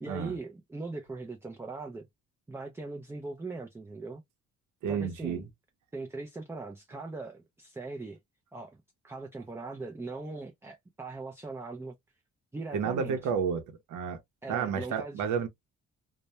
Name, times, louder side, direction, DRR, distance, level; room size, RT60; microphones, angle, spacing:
voice 1, 0.0-2.1 2.5-4.2 4.9-5.4 5.9-8.2 8.5-12.0 12.5-13.2 14.4-15.2, right 3 dB, 10° right, 0.3 m, -40 dB
voice 2, 4.8-5.5 12.7-14.2 14.5-15.5, right 6 dB, 80° right, 0.7 m, -31 dB
2.1 x 2.1 x 2.8 m
cardioid pair, 90°, 30 cm